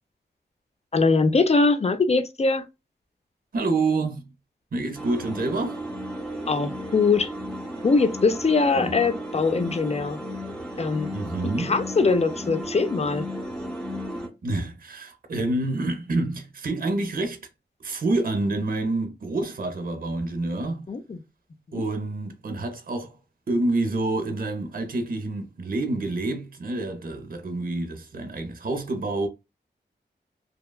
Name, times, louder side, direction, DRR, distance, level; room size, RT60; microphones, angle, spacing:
voice 1, 0.9-2.7 6.5-7.3 7.8-10.2 10.8-11.1 11.6-13.3 20.9-21.2, left 4 dB, 35° left, 0.4 m, -22 dB
voice 2, 3.5-4.3 4.7-5.8 8.8-8.9 11.1-11.7 14.4-17.4 17.8-20.9 21.7-23.1 23.5-29.3, right 2 dB, 50° right, 0.6 m, -27 dB
sound 1, 4.9-14.3, equal, 5° left, 0.9 m, -34 dB
2.8 x 2.1 x 2.2 m
wide cardioid pair, 55°, 18 cm